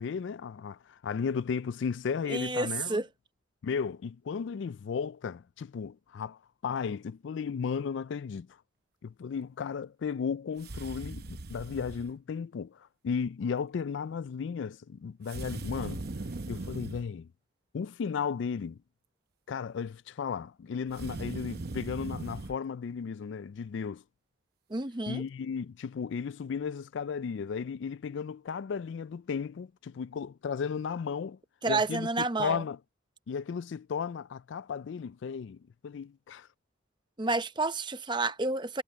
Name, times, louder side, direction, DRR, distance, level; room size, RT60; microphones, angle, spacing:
voice 1, 0.0-3.0 3.6-8.5 9.0-16.0 16.5-17.3 17.7-18.8 19.5-24.0 25.1-31.4 31.7-32.8 33.3-36.5, left 6 dB, 65° left, 0.3 m, -35 dB
voice 2, 2.3-3.1 24.7-25.2 31.6-32.6 37.2-38.8, right 3 dB, 25° right, 0.7 m, -30 dB
sound 1, 10.6-12.1 15.3-17.1 20.9-22.6, right 2 dB, 50° right, 0.8 m, -39 dB
head